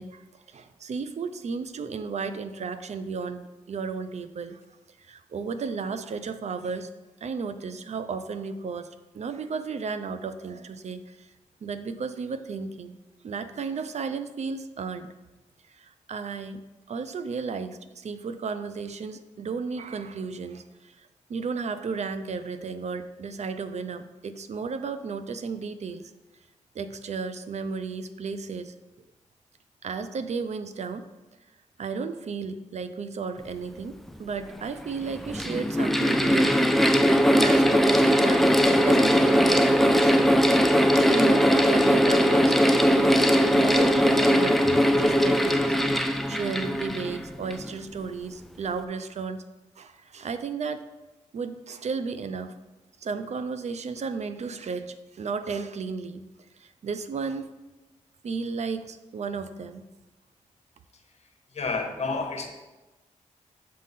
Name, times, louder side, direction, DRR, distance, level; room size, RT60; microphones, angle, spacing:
voice 1, 0.0-4.6 5.0-6.9 7.2-11.3 11.6-12.9 13.2-15.1 15.7-16.6 16.9-26.1 26.7-28.7 29.8-31.1 31.8-36.5 37.3-40.3 40.9-42.6 42.9-49.4 49.8-50.9 51.3-52.5 53.0-56.2 56.6-57.5 58.2-59.9, right 5 dB, 60° right, 10 dB, 0.5 m, -34 dB
Mechanical fan, 34.1-34.2 35.0-47.7, equal, ahead, 0.5 m, -20 dB
voice 2, 61.5-62.5, left 4 dB, 55° left, 4 dB, 1.0 m, -29 dB
7.5 x 3.7 x 4.1 m, 1.1 s
cardioid pair, 65°, 13 cm